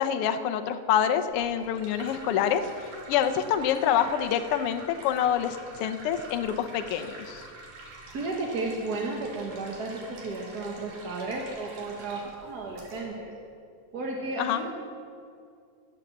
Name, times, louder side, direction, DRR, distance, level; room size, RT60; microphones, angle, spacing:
voice 1, 0.0-2.6 3.1-7.4 14.4-14.6, left 9 dB, 85° left, 9 dB, 1.2 m, -26 dB
sound 1, 1.3-13.0, right 2 dB, 80° right, 3.8 m, -46 dB
voice 2, 8.1-13.3 13.9-14.7, right 2 dB, 50° right, -1 dB, 1.2 m, -33 dB
17.5 x 8.0 x 7.4 m, 2.3 s
omnidirectional pair, 3.5 m